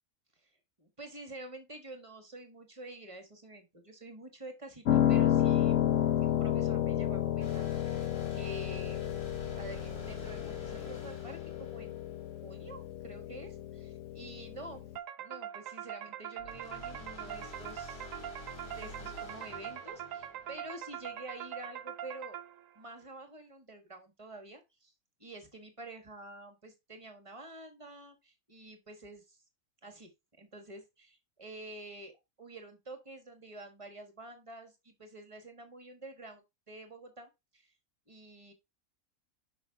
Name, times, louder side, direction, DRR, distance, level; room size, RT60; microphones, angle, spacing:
voice 1, 0.8-5.9 6.2-9.1 9.6-12.0 12.4-14.8 15.2-18.1 18.6-22.4 22.7-24.9 25.2-29.4 29.8-30.1 30.4-32.1 32.4-37.7 38.1-38.5, right 2 dB, 20° right, 6 dB, 1.4 m, -48 dB
Piano, 4.8-15.0, left 11 dB, 60° left, 1.0 m, -31 dB
sound 1, 7.4-12.9 16.4-21.1, left 2 dB, 85° left, 3.6 m, -48 dB
sound 2, 14.9-22.8, right 10 dB, 65° right, 1.0 m, -43 dB
6.1 x 5.4 x 3.5 m, 0.23 s
omnidirectional pair, 1.6 m